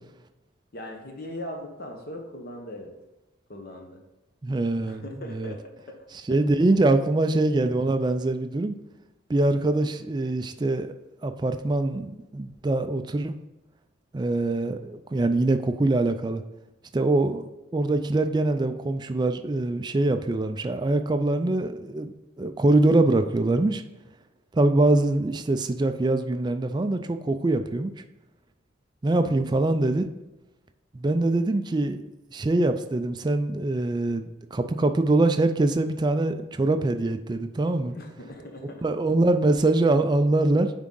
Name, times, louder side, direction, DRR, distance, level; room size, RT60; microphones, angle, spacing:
voice 1, 0.7-2.9 3.5-4.0 4.9-6.0 6.3-6.5 29.2-29.5 37.9-38.8, left 1 dB, 50° left, 3 dB, 0.9 m, -40 dB
voice 2, 4.4-5.0 5.3-5.5 6.3-8.8 9.3-10.9 11.2-13.3 14.1-16.4 16.9-23.8 24.5-27.9 29.0-30.1 30.9-32.0 32.3-37.9 38.8-40.7, right 2 dB, 20° right, 8 dB, 0.3 m, -23 dB
9.5 x 3.6 x 3.8 m, 1.0 s
head